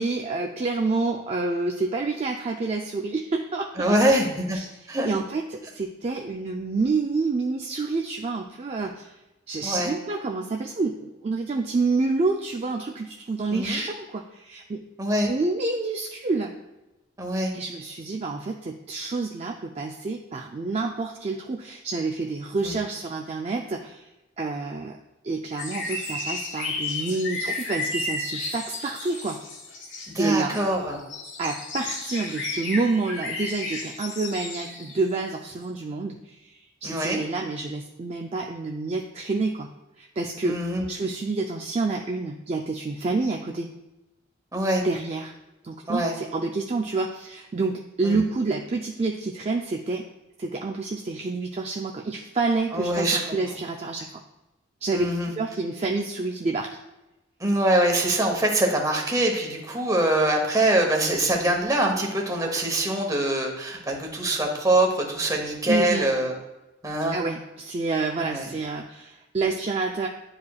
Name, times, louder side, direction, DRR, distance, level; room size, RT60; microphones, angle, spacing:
voice 1, 0.0-3.9 4.5-9.1 9.5-14.8 15.2-16.5 17.5-24.1 24.4-25.0 25.2-29.4 30.2-30.6 31.4-39.7 40.0-40.6 40.9-43.7 44.8-45.3 45.6-50.1 50.4-54.2 54.8-55.1 55.4-56.8 65.7-66.1 67.1-70.1, right 3 dB, 35° right, 1 dB, 0.4 m, -28 dB
voice 2, 3.8-4.6 4.9-5.1 9.6-9.9 13.5-13.8 15.0-15.3 17.2-17.5 22.6-22.8 30.1-31.0 36.8-37.2 40.4-40.8 44.5-44.8 45.9-46.1 48.0-48.2 52.7-53.4 54.9-55.3 57.4-66.4 66.8-67.2 68.2-68.5, right 1 dB, 20° right, 1 dB, 1.1 m, -24 dB
sound 1, 25.6-35.0 35.6-35.7, left 2 dB, 75° left, 1.2 m, -33 dB
9.8 x 4.7 x 2.4 m, 1.0 s
head